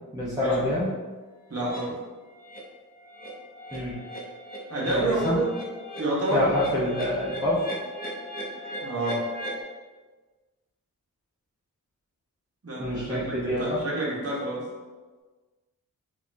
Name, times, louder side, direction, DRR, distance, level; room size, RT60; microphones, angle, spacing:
voice 1, 0.1-0.9 3.7-4.0 4.8-5.4 6.3-7.6 12.8-13.8, left 1 dB, 10° right, -11 dB, 0.7 m, -26 dB
voice 2, 1.5-1.9 4.7-5.5 6.0-6.4 8.8-9.2 12.6-14.6, right 2 dB, 45° right, -5 dB, 1.0 m, -28 dB
sound 1, 1.6-1.8 2.3-2.6 2.9-9.6, equal, 25° left, 0.7 m, -38 dB
4.1 x 2.4 x 2.6 m, 1.3 s
wide cardioid pair, 115°, 34 cm